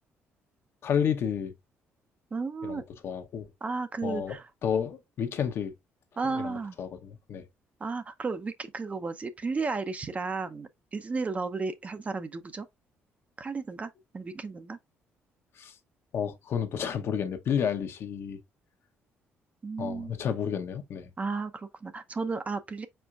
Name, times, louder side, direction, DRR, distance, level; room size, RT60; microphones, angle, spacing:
voice 1, 0.8-1.5 2.6-3.5 4.0-4.4 4.6-5.7 6.3-7.5 15.6-15.8 16.1-18.4 19.8-21.1, left 8 dB, 60° left, 0.9 m, -31 dB
voice 2, 2.3-2.8 3.6-4.4 6.2-6.8 7.8-12.7 13.4-14.8 19.6-20.1 21.2-22.9, right 4 dB, 30° right, 0.6 m, -33 dB
4.4 x 4.3 x 2.3 m
cardioid pair, 95°, 5 cm